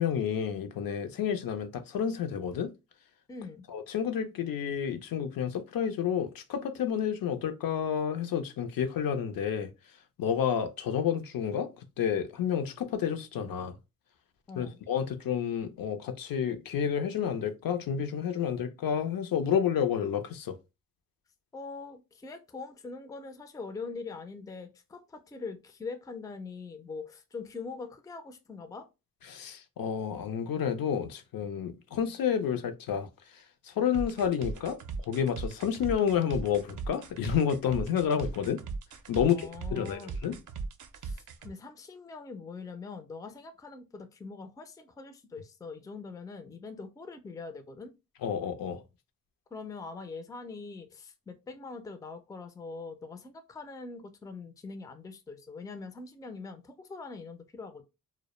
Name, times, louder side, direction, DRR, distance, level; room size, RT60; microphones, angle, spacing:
voice 1, 0.0-2.7 3.7-9.7 10.2-13.8 14.6-20.6 29.3-34.8 35.0-38.6 39.1-40.4 48.2-48.8, left 8 dB, 70° left, 0.5 m, -30 dB
voice 2, 3.3-3.6 14.5-14.8 21.5-28.9 39.2-40.2 41.0-47.9 49.5-57.8, left 4 dB, 10° left, 0.3 m, -43 dB
sound 1, 33.9-41.5, right 4 dB, 55° right, 0.5 m, -38 dB
2.2 x 2.0 x 2.9 m
cardioid pair, 80°, 37 cm